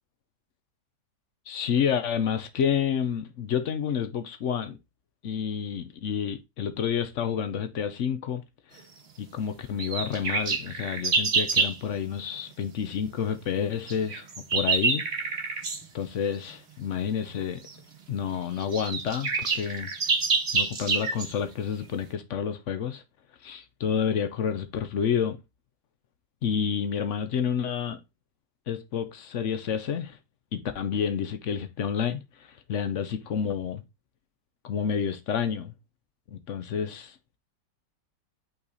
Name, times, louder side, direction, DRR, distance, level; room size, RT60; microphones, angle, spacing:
voice 1, 1.5-4.8 5.2-8.4 8.7-8.8 9.2-14.3 14.5-15.0 15.9-17.6 18.1-19.9 20.5-23.0 23.4-25.4 26.4-28.0 28.7-30.2 30.5-33.8 34.6-35.7 36.3-37.2, left 7 dB, 60° left, 0.8 m, -29 dB
sound 1, 9.8-11.8 13.9-15.8 17.7-17.8 18.3-18.4 18.6-21.3, right 4 dB, 40° right, 1.3 m, -27 dB
5.7 x 4.1 x 4.0 m
omnidirectional pair, 1.9 m